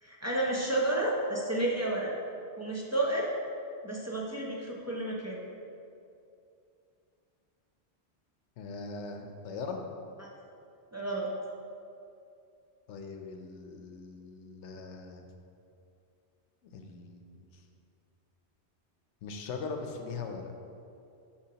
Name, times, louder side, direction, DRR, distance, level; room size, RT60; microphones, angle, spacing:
voice 1, 0.0-2.1 2.6-3.3 3.8-5.4 10.2-10.3 10.9-11.3, right 1 dB, 25° right, -4 dB, 0.4 m, -31 dB
voice 2, 8.6-9.8 12.9-15.3 16.7-17.6 19.2-20.5, left 4 dB, 90° left, 4 dB, 0.9 m, -40 dB
6.9 x 4.9 x 2.8 m, 2.6 s
omnidirectional pair, 1.2 m